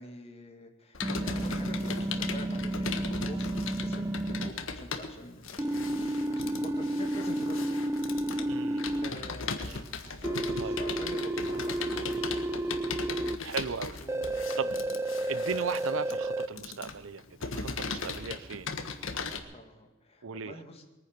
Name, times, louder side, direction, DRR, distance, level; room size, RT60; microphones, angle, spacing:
voice 1, 0.0-5.7 6.0-7.9 8.2-13.2 14.0-14.8 19.5-20.8, left 1 dB, 30° left, 3 dB, 2.3 m, -47 dB
Computer keyboard, 0.9-19.4, left 4 dB, 65° left, 1.4 m, -38 dB
sound 1, 1.0-4.5 5.6-9.1 10.2-13.4 14.1-16.5, right 1 dB, 15° right, 0.4 m, -31 dB
sound 2, 1.3-2.4 3.4-4.3 5.4-6.3 7.3-8.5 9.3-10.5 11.3-12.2 13.4-14.3 15.3-16.5 17.4-18.6, left 4 dB, 85° left, 2.1 m, -52 dB
voice 2, 8.5-9.3 9.6-9.8 10.6-10.8 13.4-14.0 14.6-14.7 15.3-18.7 20.2-20.6, right 5 dB, 70° right, 16 dB, 0.6 m, -37 dB
22.0 x 9.8 x 6.6 m, 1.1 s
head